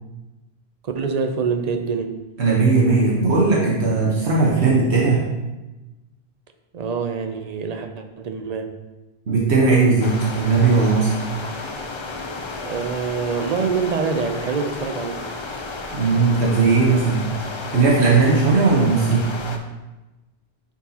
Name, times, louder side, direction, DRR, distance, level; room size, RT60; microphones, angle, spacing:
voice 1, 0.8-2.2 6.7-8.8 12.6-15.3, right 5 dB, 45° right, 6 dB, 0.6 m, -25 dB
voice 2, 2.4-5.2 9.3-11.2 15.9-17.3 17.7-19.3, right 4 dB, 90° right, -5 dB, 1.4 m, -17 dB
sound 1, 10.0-19.6, left 3 dB, 35° left, 0.5 m, -32 dB
9.3 x 4.6 x 2.9 m, 1.1 s
omnidirectional pair, 1.1 m